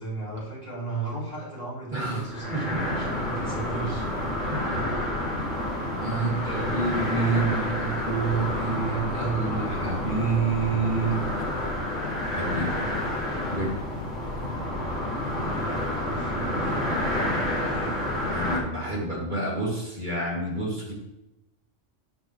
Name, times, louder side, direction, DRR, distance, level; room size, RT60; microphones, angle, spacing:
voice 1, 0.0-5.1 6.2-6.9 15.0-16.8 17.6-18.1, right 3 dB, 35° left, -7 dB, 3.9 m, -36 dB
voice 2, 1.9-3.0 4.6-4.8 6.0-11.5 12.2-12.7 13.5-13.7 18.3-20.9, right 3 dB, 40° right, -4 dB, 2.7 m, -28 dB
sound 1, 2.2-18.6, left 1 dB, 85° right, 4.5 m, -29 dB
11.5 x 10.5 x 3.2 m, 0.93 s
omnidirectional pair, 1.2 m